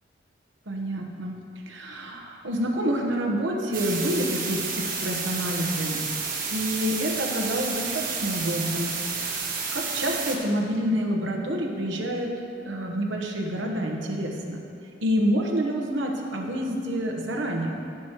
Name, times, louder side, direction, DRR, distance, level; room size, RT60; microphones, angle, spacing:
voice 1, 0.7-1.4 1.6-6.0 6.5-12.3 12.6-14.6 15.0-17.8, equal, 85° right, 1 dB, 1.2 m, -28 dB
sound 1, 3.7-10.4, right 5 dB, 50° right, 1.3 m, -30 dB
15.5 x 6.1 x 3.1 m, 2.6 s
head